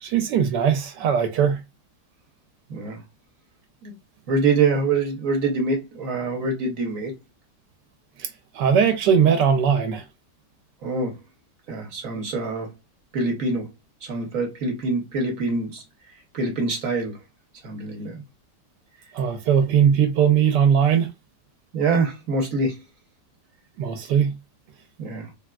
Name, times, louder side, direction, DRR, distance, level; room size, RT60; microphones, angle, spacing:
voice 1, 0.0-1.6 8.2-10.1 19.1-21.1 23.8-24.3, right 7 dB, 80° right, 1.2 m, -20 dB
voice 2, 4.3-7.1 10.8-11.2 11.7-12.7 13.1-13.7 14.0-15.8 16.3-17.2 17.6-18.2 21.7-22.8 25.0-25.3, right 3 dB, 60° right, 1.1 m, -25 dB
3.6 x 2.3 x 2.2 m
omnidirectional pair, 1.9 m